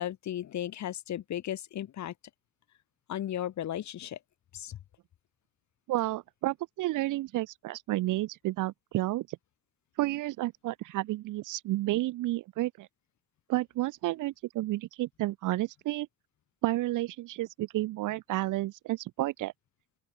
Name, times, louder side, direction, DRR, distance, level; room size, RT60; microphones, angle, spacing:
voice 1, 0.0-2.1 3.1-4.2 4.5-4.8, left 11 dB, 70° left, 2.3 m, -35 dB
voice 2, 5.9-9.4 10.0-12.9 13.5-16.1 16.6-19.5, right 16 dB, 90° right, 1.6 m, -31 dB
open air
cardioid pair, 90°, 30 cm